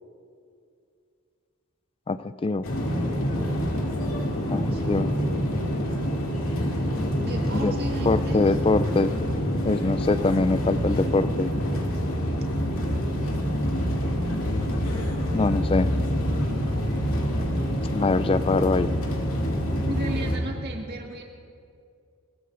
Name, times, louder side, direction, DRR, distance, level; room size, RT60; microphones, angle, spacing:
voice 1, 2.1-2.7 4.5-5.1 7.5-7.7 8.1-9.1 9.7-11.5 15.3-15.9 17.9-18.9, left 3 dB, 25° left, 14 dB, 0.3 m, -23 dB
sound 1, 2.6-20.4, equal, 80° left, 2.4 m, -26 dB
voice 2, 4.5-5.0 7.2-8.5 19.8-21.2, right 2 dB, 50° right, 0 dB, 1.7 m, -34 dB
21.5 x 21.0 x 2.6 m, 2.4 s
head